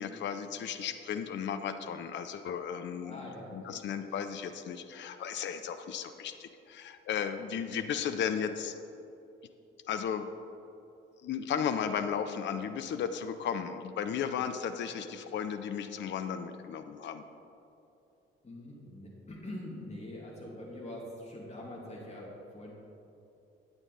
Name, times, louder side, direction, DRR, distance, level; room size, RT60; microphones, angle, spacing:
voice 1, 0.0-8.8 9.9-10.3 11.2-17.2, left 7 dB, 40° left, 9 dB, 0.5 m, -35 dB
voice 2, 3.0-3.8 18.4-22.7, left 1 dB, 20° left, -4 dB, 2.2 m, -44 dB
8.8 x 8.8 x 4.1 m, 2.8 s
figure-of-eight pair, 40°, 29 cm